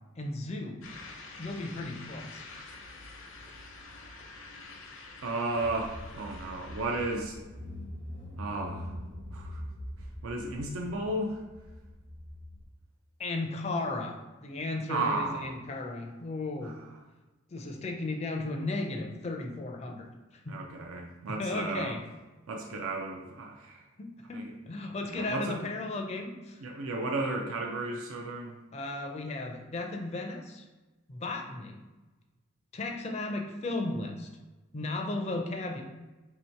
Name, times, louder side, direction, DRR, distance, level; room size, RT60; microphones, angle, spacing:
voice 1, 0.2-0.8 1.4-2.5 13.2-16.7 17.5-20.1 20.4-20.6 21.3-22.0 24.0-26.6 28.7-30.6 31.1-31.8 32.7-34.3 34.7-35.8, left 2 dB, 30° left, 2 dB, 0.4 m, -35 dB
sound 1, 0.8-7.2, left 3 dB, 70° left, 0.6 m, -47 dB
voice 2, 5.2-7.4 8.4-8.9 9.3-9.6 10.2-11.4 14.9-15.5 16.6-16.7 20.5-21.9 22.5-23.8 24.3-24.5 25.1-25.6 26.6-28.6, right 2 dB, 80° right, 1 dB, 0.4 m, -33 dB
Car / Engine, 5.6-12.6, equal, 40° right, 0.7 m, -43 dB
3.0 x 2.8 x 4.4 m, 1.2 s
head